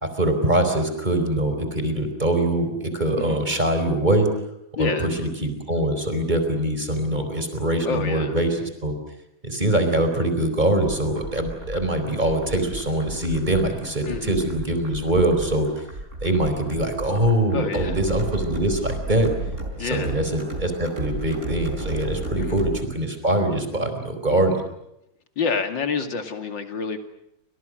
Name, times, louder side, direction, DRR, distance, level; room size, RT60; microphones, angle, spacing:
voice 1, 0.0-4.3 4.8-9.0 9.4-15.7 16.2-19.3 19.8-24.6, right 1 dB, 20° right, 6 dB, 4.7 m, -23 dB
voice 2, 4.7-5.1 7.8-8.3 14.1-14.4 17.5-18.0 19.8-20.1 22.4-22.6 25.4-27.0, left 5 dB, 70° left, 7 dB, 3.1 m, -28 dB
sound 1, 10.8-22.8, right 1 dB, 35° right, 4.5 m, -34 dB
30.0 x 26.5 x 6.4 m, 0.81 s
omnidirectional pair, 2.1 m